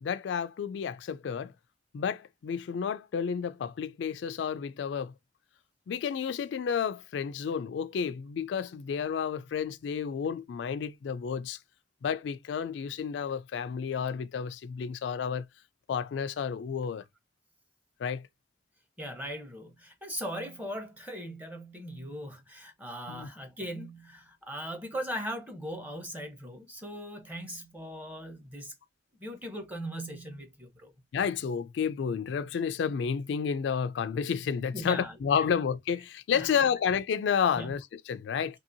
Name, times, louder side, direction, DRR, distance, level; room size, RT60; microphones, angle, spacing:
voice 1, 0.0-1.5 1.9-5.1 5.9-11.6 12.0-15.5 15.9-17.0 18.0-18.3 23.1-23.3 31.1-38.6, left 7 dB, 75° left, 0.3 m, -31 dB
voice 2, 19.0-28.7 29.2-30.9 34.7-35.5 36.3-36.5 37.5-37.7, equal, 10° right, 0.8 m, -39 dB
2.8 x 2.7 x 2.6 m
head